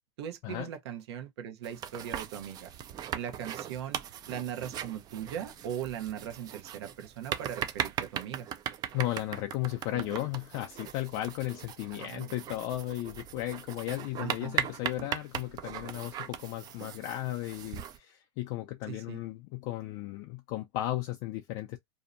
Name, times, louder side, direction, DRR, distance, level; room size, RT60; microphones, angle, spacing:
voice 1, 0.2-2.7 3.1-4.0 4.3-8.5 11.9-12.3 14.2-14.6 15.0-15.1 18.9-19.2, right 9 dB, 75° right, 0.7 m, -39 dB
sound 1, 1.6-18.0, right 9 dB, 30° right, 0.4 m, -39 dB
voice 2, 8.9-21.8, left 15 dB, 50° left, 0.4 m, -35 dB
2.7 x 2.1 x 2.4 m
supercardioid pair, 130°, 14 cm